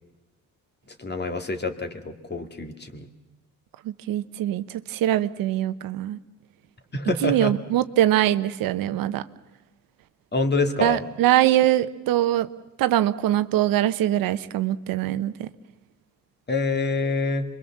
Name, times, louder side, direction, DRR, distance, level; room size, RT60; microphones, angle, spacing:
voice 1, 1.0-3.1 6.9-7.5 10.3-11.0 16.5-17.4, left 3 dB, 30° left, 8 dB, 2.2 m, -26 dB
voice 2, 3.8-6.2 7.2-9.2 10.8-12.5 12.8-15.5, right 13 dB, 80° right, 13 dB, 0.9 m, -23 dB
26.5 x 22.5 x 7.3 m, 1.1 s
cardioid pair, 95°, 34 cm